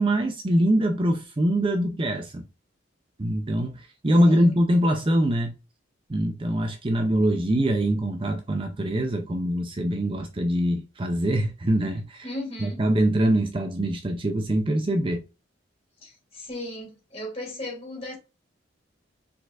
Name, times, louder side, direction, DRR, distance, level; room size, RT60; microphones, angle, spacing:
voice 1, 0.0-2.4 3.2-5.5 6.1-12.3 12.6-15.2, right 1 dB, 25° right, 0.5 m, -23 dB
voice 2, 12.2-12.8 16.0-18.2, left 1 dB, 30° left, 2.6 m, -36 dB
4.8 x 4.1 x 2.5 m
head